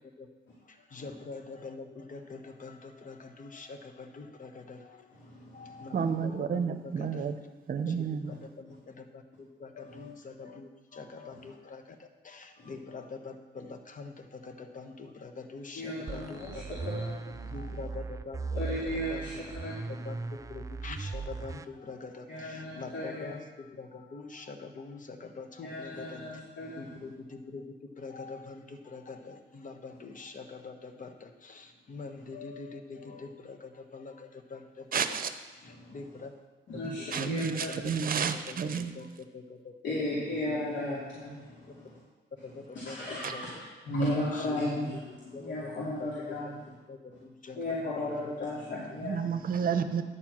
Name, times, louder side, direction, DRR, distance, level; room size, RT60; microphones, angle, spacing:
voice 1, 0.7-5.1 5.5-7.2 7.9-16.7 17.5-18.4 18.8-19.2 19.9-26.2 26.8-27.6 28.0-35.0 35.5-36.3 36.7-37.9 38.5-39.1 39.3-39.7 40.5-40.7 42.4-43.4 44.3-44.6 45.3-46.1 46.4-47.6 47.8-48.3, left 4 dB, 40° left, 6 dB, 1.1 m, -44 dB
voice 2, 5.1-5.9 9.8-10.1 11.3-11.4 12.6-12.7 15.7-17.7 18.5-20.0 22.3-23.3 25.6-27.1 35.6-36.2 36.7-37.9 39.8-42.0 42.7-46.7 47.5-49.3, left 1 dB, 65° left, -7 dB, 2.6 m, -36 dB
voice 3, 5.9-7.3 7.7-8.3 34.9-35.3 36.8-38.9 43.2-43.3 49.0-50.0, right 6 dB, 45° right, 9 dB, 0.8 m, -31 dB
sound 1, 16.1-21.7, right 4 dB, 15° right, 0.3 m, -38 dB
10.0 x 4.6 x 7.4 m, 1.2 s
cardioid pair, 90°, 20 cm